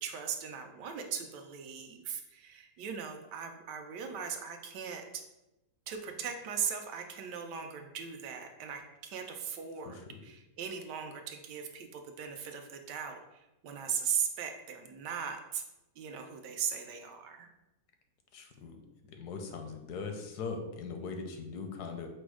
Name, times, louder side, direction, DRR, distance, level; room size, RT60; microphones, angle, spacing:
voice 1, 0.0-5.2 5.9-15.6 16.0-17.5, right 7 dB, 90° right, 5 dB, 1.2 m, -38 dB
voice 2, 9.8-10.2 18.3-18.8 19.1-22.1, left 4 dB, 80° left, 5 dB, 1.2 m, -40 dB
5.1 x 2.1 x 4.7 m, 0.97 s
omnidirectional pair, 1.8 m